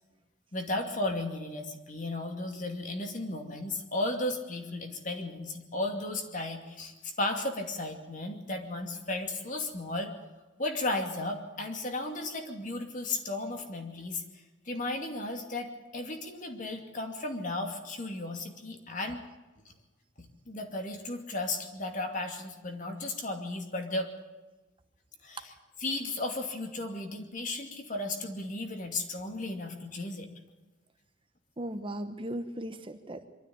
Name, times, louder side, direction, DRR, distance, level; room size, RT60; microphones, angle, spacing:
voice 1, 0.5-10.1 10.6-14.2 14.7-19.2 20.5-24.1 25.2-25.5 25.8-30.3, left 2 dB, 40° left, 4 dB, 2.6 m, -34 dB
voice 2, 31.6-33.3, right 1 dB, 25° right, 7 dB, 1.1 m, -37 dB
23.5 x 13.5 x 8.8 m, 1.1 s
head